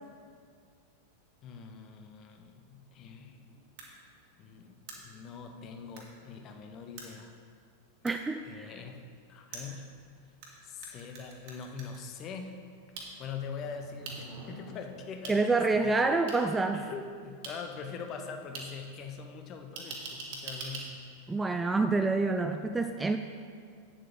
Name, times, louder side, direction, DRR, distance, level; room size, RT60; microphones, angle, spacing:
voice 1, 1.4-3.4 4.4-7.3 8.4-10.0 10.6-12.6 13.2-15.4 15.7-16.2 16.6-21.0 22.5-22.7, left 5 dB, 35° left, 5 dB, 0.9 m, -43 dB
sound 1, 3.3-5.0 5.3-5.4 12.7-15.4, right 1 dB, 30° right, 2.0 m, -52 dB
sound 2, 3.8-3.9 4.9-5.0 6.0-6.1 7.0-7.1 8.1-8.2 9.5-10.5 10.8-12.0 13.0-13.1 14.0-14.2 15.2-15.3 16.3-16.4 17.4-17.5 18.5-18.6 19.8-20.8, right 4 dB, 50° right, 1.9 m, -42 dB
voice 2, 8.0-8.7 15.3-16.8 21.3-23.2, right 3 dB, 10° right, 7 dB, 0.4 m, -27 dB
8.8 x 7.4 x 5.0 m, 2.2 s
figure-of-eight pair, 90°, 0 cm